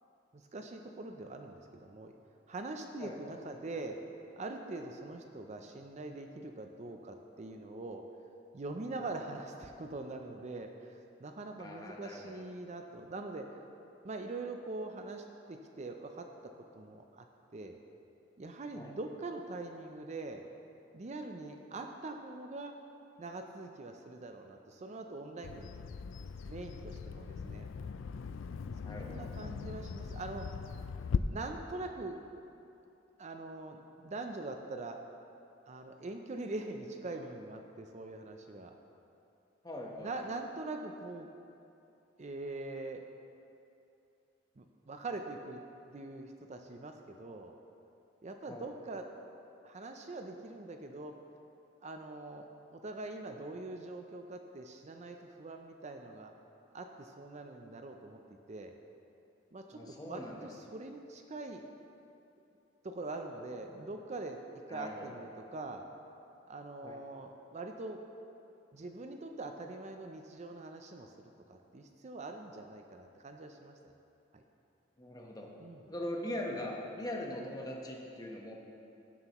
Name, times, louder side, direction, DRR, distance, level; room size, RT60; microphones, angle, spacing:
voice 1, 0.3-2.1 2.5-4.0 4.4-8.0 8.5-13.4 14.0-16.2 16.7-17.2 17.5-17.8 18.4-20.4 20.9-22.7 23.2-25.7 26.5-27.7 29.0-30.5 31.3-32.2 33.2-35.0 35.7-38.7 40.0-41.3 42.2-43.0 44.6-45.6 45.9-47.5 48.2-49.1 49.6-51.1 51.8-56.3 56.7-58.2 58.5-58.7 59.5-61.6 62.8-64.4 64.7-65.8 66.5-68.0 68.7-73.8 74.3-74.4 75.6-75.8, right 2 dB, 35° right, 4 dB, 0.5 m, -43 dB
voice 2, 3.0-3.4 11.6-12.5 18.7-18.9 28.8-29.3 39.6-40.1 48.5-48.6 59.7-60.4 64.7-65.1 66.8-67.0 75.0-75.5 75.9-78.5, left 1 dB, 20° left, -1 dB, 1.1 m, -41 dB
Bird vocalization bird call bird song, 25.4-31.2, left 6 dB, 75° left, 0.4 m, -39 dB
16.5 x 7.7 x 3.0 m, 2.7 s
head